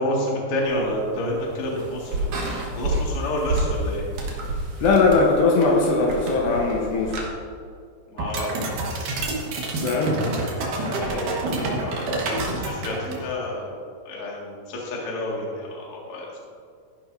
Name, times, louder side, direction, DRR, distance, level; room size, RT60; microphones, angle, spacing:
voice 1, 0.0-2.3 2.7-4.0 8.1-8.7 9.7-10.0 11.0-13.8 14.0-16.2, left 1 dB, 50° left, -4 dB, 1.8 m, -29 dB
sound 1, 0.6-7.3, right 1 dB, 80° right, 1.5 m, -30 dB
voice 2, 4.8-7.2 9.8-10.2, left 3 dB, 75° left, -1 dB, 2.9 m, -20 dB
sound 2, 8.2-13.4, right 2 dB, 60° right, 2.3 m, -27 dB
14.0 x 10.5 x 2.7 m, 2.2 s
omnidirectional pair, 5.6 m